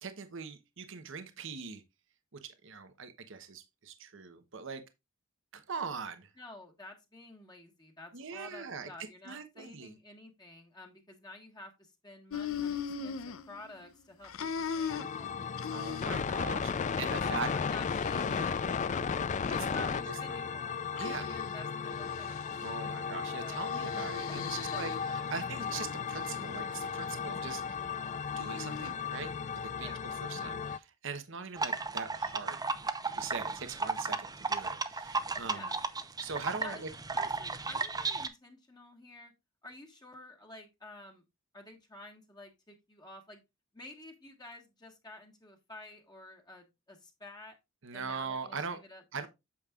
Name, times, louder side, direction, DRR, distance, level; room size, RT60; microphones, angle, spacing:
voice 1, 0.0-1.8 2.4-4.8 5.5-6.3 8.1-8.9 9.2-9.9 15.7-16.7 17.0-17.5 18.3-18.6 19.7-20.2 21.0-21.3 22.6-27.8 28.4-32.6 33.1-35.7 36.2-36.9 47.8-48.8 49.1-49.3, right 5 dB, 65° right, 1.0 m, -41 dB
voice 2, 6.4-15.9 17.2-19.1 19.5-20.8 21.2-23.7 24.3-24.8 29.8-30.0 33.4-33.6 35.5-35.8 36.6-36.8 37.1-39.3 39.6-41.2 41.5-43.4 43.7-47.6 47.9-49.0, left 2 dB, 20° left, 1.5 m, -51 dB
sound 1, 12.3-13.9 14.2-16.3 16.7-17.0 17.5-18.5 19.2-20.0 21.0-21.5 21.9-22.7 23.5-25.2 25.7-26.5 28.3-29.0, left 6 dB, 80° left, 0.6 m, -40 dB
sound 2, 14.9-30.8, left 6 dB, 35° left, 0.4 m, -35 dB
sound 3, 31.6-38.3, right 4 dB, 20° right, 0.7 m, -34 dB
8.6 x 7.2 x 2.4 m
head